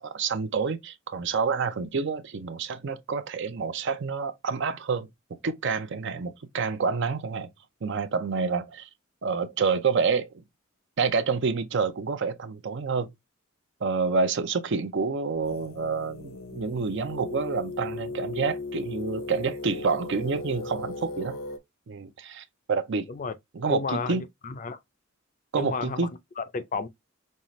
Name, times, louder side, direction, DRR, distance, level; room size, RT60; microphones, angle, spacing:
voice 1, 0.0-5.1 5.4-7.5 7.8-8.9 9.2-10.3 11.0-13.1 13.8-21.4 21.9-23.1 23.5-24.2 25.5-26.1, right 5 dB, 60° right, 0.5 m, -28 dB
sound 1, 15.4-21.6, left 3 dB, 85° left, 0.7 m, -37 dB
voice 2, 23.7-24.8 25.6-26.1 26.4-26.9, left 4 dB, 40° left, 0.4 m, -32 dB
5.4 x 2.4 x 3.0 m
head